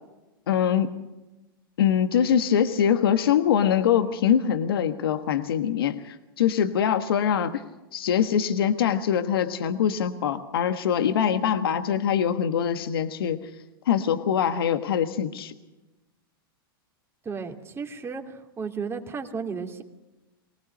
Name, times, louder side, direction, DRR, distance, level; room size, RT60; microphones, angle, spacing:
voice 1, 0.5-1.0 1.8-7.6 7.9-13.5 13.8-15.5, left 8 dB, 75° left, 9 dB, 1.4 m, -23 dB
voice 2, 17.2-19.8, right 5 dB, 20° right, 3 dB, 2.8 m, -34 dB
23.5 x 19.0 x 6.6 m, 1.0 s
hypercardioid pair, 105°, 12 cm